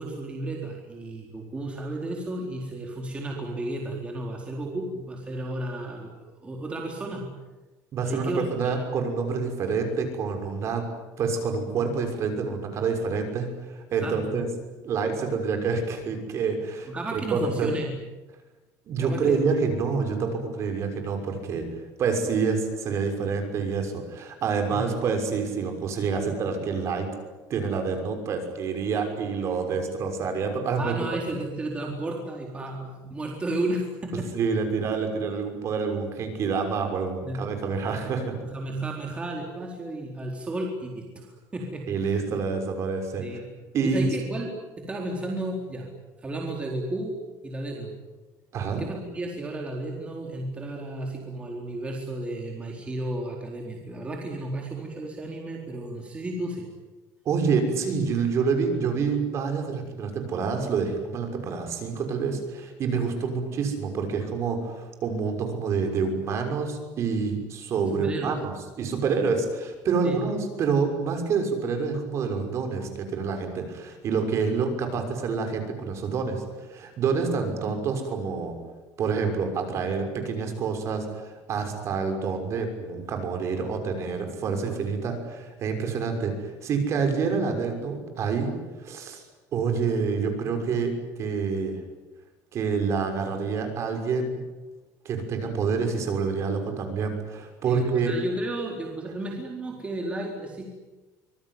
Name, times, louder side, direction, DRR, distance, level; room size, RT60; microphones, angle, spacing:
voice 1, 0.0-7.3 8.0-8.8 14.0-14.3 16.9-17.9 19.0-19.5 24.7-24.8 30.8-34.3 37.2-37.4 38.4-41.9 43.2-43.5 43.8-45.9 46.2-47.2 47.4-48.0 48.8-56.7 67.9-68.4 70.0-70.2 97.6-100.7, right 2 dB, 15° right, 0 dB, 4.0 m, -33 dB
voice 2, 7.9-10.8 11.2-14.5 14.8-17.8 18.9-21.7 22.0-27.1 27.5-30.9 34.3-38.4 41.9-43.2 43.7-44.1 48.5-48.8 57.2-78.6 79.0-88.5 88.8-89.2 89.5-90.9 91.2-91.8 92.5-94.4 95.0-98.1, right 5 dB, 45° right, 5 dB, 6.2 m, -27 dB
25.5 x 22.5 x 9.6 m, 1.2 s
cardioid pair, 145°, 7 cm